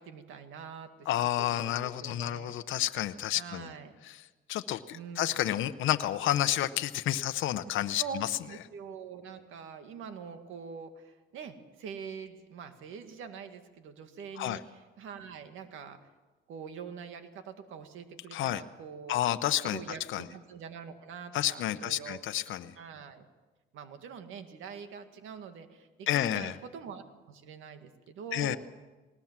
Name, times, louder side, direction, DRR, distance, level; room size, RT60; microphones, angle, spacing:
voice 1, 0.0-1.1 1.4-2.6 3.3-4.0 4.9-5.4 7.6-16.0 16.5-22.2 22.8-23.3 23.7-28.6, right 6 dB, 85° right, 7 dB, 2.1 m, -44 dB
voice 2, 1.1-3.7 4.0-4.2 4.5-8.3 14.4-14.6 18.3-18.6 19.1-19.8 20.1-20.2 21.3-22.7 26.1-26.6 28.3-28.6, left 12 dB, 80° left, 11 dB, 0.8 m, -30 dB
20.0 x 19.5 x 7.4 m, 1.2 s
cardioid pair, 90°, 20 cm